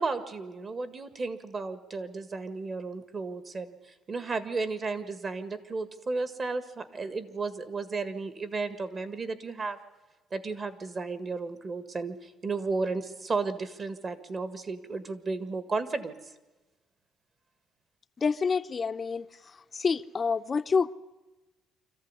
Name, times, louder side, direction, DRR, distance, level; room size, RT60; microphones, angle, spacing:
voice 1, 0.0-9.8 10.3-16.3, right 3 dB, 35° right, 11 dB, 1.8 m, -33 dB
voice 2, 18.2-19.3 19.7-20.9, left 5 dB, 30° left, 12 dB, 0.6 m, -27 dB
25.5 x 15.0 x 9.7 m, 1.1 s
cardioid pair, 125°, 0 cm